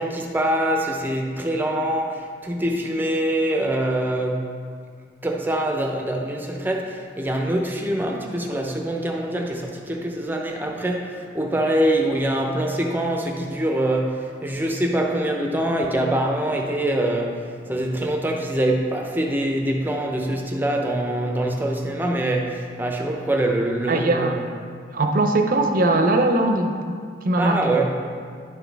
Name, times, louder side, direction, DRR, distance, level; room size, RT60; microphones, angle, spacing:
voice 1, 0.0-4.5 5.2-24.4 27.4-27.9, right 1 dB, 10° right, 1 dB, 0.7 m, -24 dB
voice 2, 23.9-24.4 24.9-27.0 27.2-27.8, right 2 dB, 50° right, 5 dB, 0.6 m, -20 dB
10.5 x 6.1 x 3.4 m, 2.1 s
head